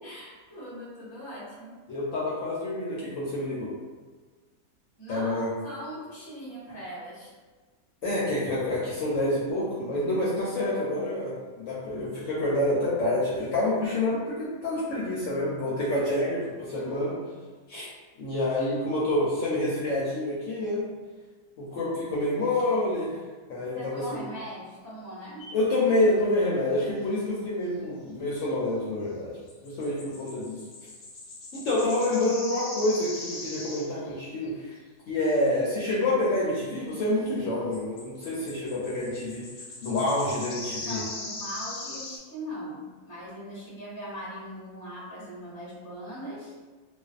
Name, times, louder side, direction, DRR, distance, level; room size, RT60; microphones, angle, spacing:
voice 1, 0.0-1.7 5.0-7.3 16.7-17.1 23.7-25.5 40.8-46.5, equal, 20° left, -8 dB, 0.5 m, -40 dB
voice 2, 1.9-3.7 5.1-5.5 8.0-17.1 17.7-17.9 18.2-20.8 21.6-23.2 23.5-24.2 25.5-29.3 29.6-30.6 31.5-34.8 35.1-39.5 39.8-41.0, left 1 dB, 65° left, -7 dB, 0.8 m, -27 dB
sound 1, 25.4-25.6 29.5-34.1 34.5-34.6 35.6-35.7 37.1-37.2 37.7-42.2, left 2 dB, 90° left, 1.1 m, -40 dB
2.5 x 2.3 x 2.4 m, 1.3 s
omnidirectional pair, 1.6 m